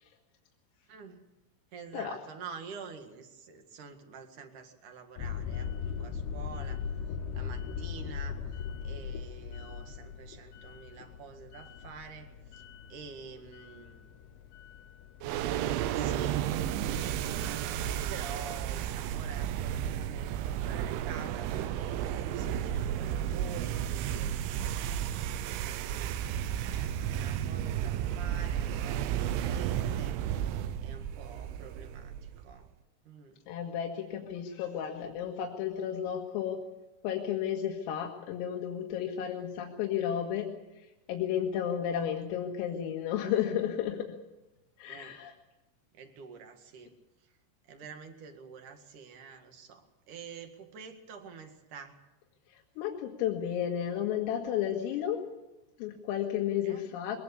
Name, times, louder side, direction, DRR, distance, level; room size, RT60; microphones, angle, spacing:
voice 1, 0.9-1.3 1.7-6.8 7.3-12.6 12.9-14.1 15.9-16.5 16.9-24.4 25.1-30.2 30.8-32.7 33.0-33.4 44.9-45.2 45.9-46.9 47.7-52.0 56.6-56.8, right 6 dB, 50° right, 6 dB, 2.7 m, -48 dB
sound 1, 5.2-17.0, left 6 dB, 75° left, 2.4 m, -40 dB
sound 2, 15.2-32.6, right 10 dB, 80° right, 3.2 m, -33 dB
voice 2, 33.5-36.6 37.0-40.5 41.1-44.1 44.8-45.3 52.8-55.2 55.8-57.2, left 9 dB, 90° left, 1 dB, 4.4 m, -32 dB
22.5 x 19.5 x 7.0 m, 1.0 s
omnidirectional pair, 5.9 m